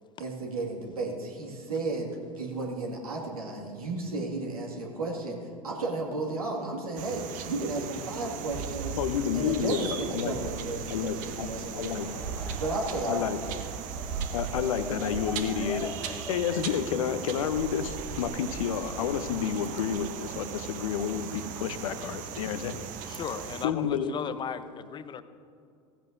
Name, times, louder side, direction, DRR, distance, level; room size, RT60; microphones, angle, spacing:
voice 1, 0.2-5.4 5.6-9.0 9.3-12.2 12.6-13.2, right 2 dB, 75° right, -1 dB, 2.0 m, -33 dB
sound 1, 7.0-23.7, right 7 dB, 45° right, 0.9 m, -38 dB
voice 2, 9.0-10.4 10.9-11.5 11.7-12.2 13.1-13.6 14.3-22.9 23.6-24.1, left 8 dB, 65° left, 11 dB, 0.8 m, -30 dB
Laughter / Crowd, 11.8-18.2, left 1 dB, 5° left, 1.0 m, -44 dB
voice 3, 23.0-25.2, left 7 dB, 25° left, 12 dB, 0.7 m, -36 dB
16.5 x 14.5 x 2.6 m, 2.4 s
figure-of-eight pair, 80°, 19 cm